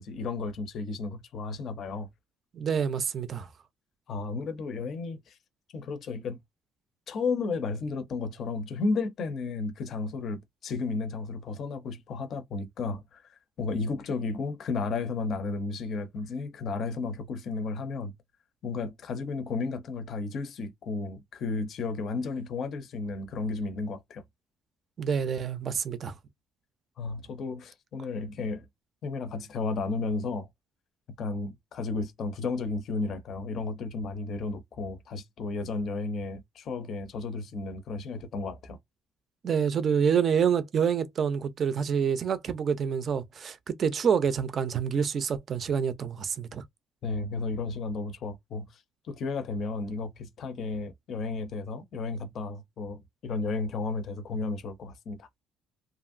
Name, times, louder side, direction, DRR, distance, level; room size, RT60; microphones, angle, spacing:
voice 1, 0.0-2.1 4.1-5.4 5.7-6.4 7.1-18.1 18.6-24.2 27.0-28.7 29.0-30.5 31.2-38.8 47.0-48.8 49.1-55.3, left 3 dB, 45° left, 0.6 m, -33 dB
voice 2, 2.5-3.5 25.0-26.1 39.4-46.6, right 7 dB, 35° right, 0.4 m, -27 dB
2.8 x 2.5 x 2.5 m
cardioid pair, 160°, 0 cm